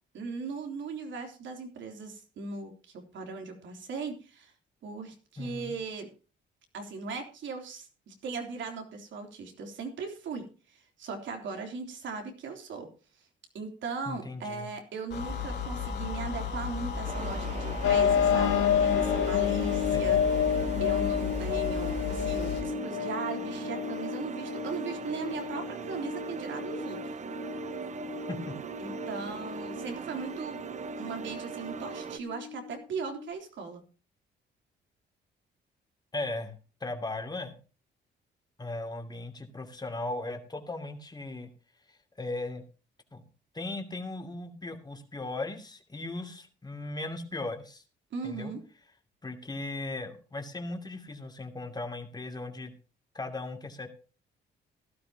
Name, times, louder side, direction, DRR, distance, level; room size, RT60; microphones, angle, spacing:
voice 1, 0.1-4.5 4.8-6.1 6.7-12.9 13.5-20.2 20.5-27.0 28.8-30.6 31.0-33.8 48.1-48.6, right 4 dB, 70° right, 4 dB, 3.4 m, -38 dB
voice 2, 5.4-5.7 14.1-14.7 19.9-20.2 28.3-28.5 36.1-36.6 36.8-37.5 38.6-41.5 41.9-42.6 43.1-43.2 43.5-47.8 48.2-48.5 49.2-52.7 53.1-53.9, left 2 dB, 20° left, 5 dB, 2.7 m, -37 dB
sound 1, 15.1-22.7, left 6 dB, 60° left, 3.8 m, -35 dB
sound 2, 17.0-32.2, right 7 dB, 35° right, 0.7 m, -40 dB
sound 3, 17.8-33.3, left 8 dB, 90° left, 1.5 m, -30 dB
16.5 x 12.5 x 2.9 m, 0.34 s
cardioid pair, 90°, 20 cm